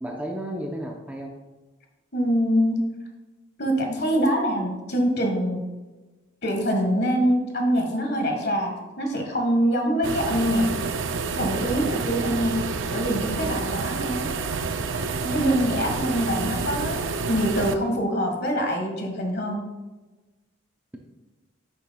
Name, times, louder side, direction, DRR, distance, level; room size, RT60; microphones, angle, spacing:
voice 1, 0.0-1.3, right 1 dB, 5° right, 0 dB, 0.6 m, -33 dB
voice 2, 2.1-2.9 3.6-5.7 6.4-10.7 11.3-14.4 15.2-19.6, equal, 50° left, 2 dB, 1.5 m, -24 dB
sound 1, 10.0-17.7, right 4 dB, 70° right, 0.5 m, -28 dB
10.5 x 7.1 x 2.3 m, 1.2 s
head